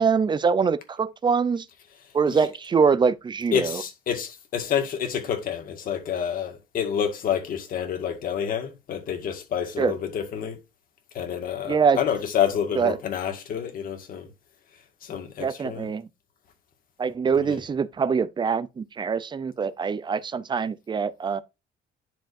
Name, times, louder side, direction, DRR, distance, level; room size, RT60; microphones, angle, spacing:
voice 1, 0.0-1.7 2.1-3.8 9.8-9.9 11.7-12.0 12.8-13.0 15.4-16.1 17.0-21.4, right 5 dB, 25° right, 0.5 m, -24 dB
voice 2, 3.5-10.6 11.1-14.3 15.0-15.9 17.5-17.6, left 8 dB, 55° left, 1.9 m, -28 dB
10.0 x 4.9 x 2.6 m
cardioid pair, 110°, 17 cm